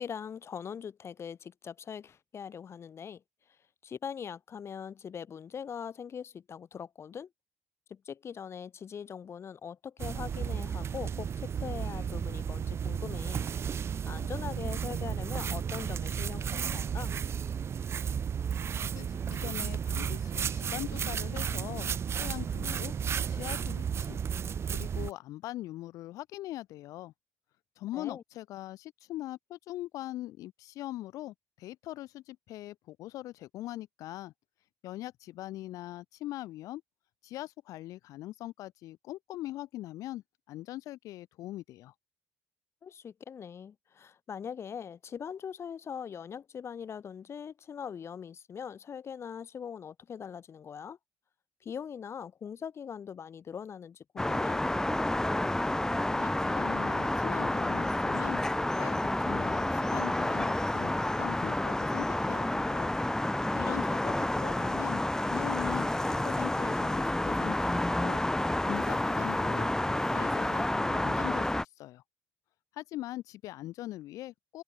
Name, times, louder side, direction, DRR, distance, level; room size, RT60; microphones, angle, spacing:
voice 1, 0.0-3.2 3.8-7.3 7.9-13.5 14.0-17.2 27.9-28.2 42.8-51.0 51.6-54.7 63.5-63.8, left 7 dB, 50° left, 3.0 m, -41 dB
sound 1, 10.0-25.1, right 7 dB, 50° right, 1.2 m, -33 dB
voice 2, 18.9-21.9 22.2-22.9 23.3-24.2 24.7-27.1 27.8-34.3 34.8-36.8 37.2-41.9 56.1-58.4 58.7-62.9 63.6-68.2 68.7-72.0 72.8-74.6, left 15 dB, 75° left, 4.7 m, -41 dB
sound 2, 54.2-71.6, left 1 dB, 10° left, 1.6 m, -29 dB
open air
supercardioid pair, 65°, 6 cm